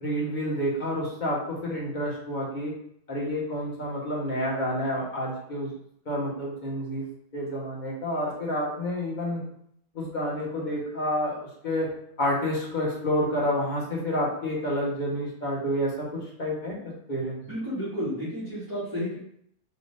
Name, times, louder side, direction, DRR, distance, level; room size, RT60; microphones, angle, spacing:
voice 1, 0.0-2.7 3.1-5.7 6.1-7.1 7.3-9.4 9.9-11.9 12.2-16.1 16.4-17.4, equal, 35° left, -4 dB, 1.1 m, -29 dB
voice 2, 17.4-19.2, equal, 15° right, -13 dB, 1.7 m, -32 dB
3.9 x 3.1 x 3.4 m, 0.69 s
omnidirectional pair, 1.7 m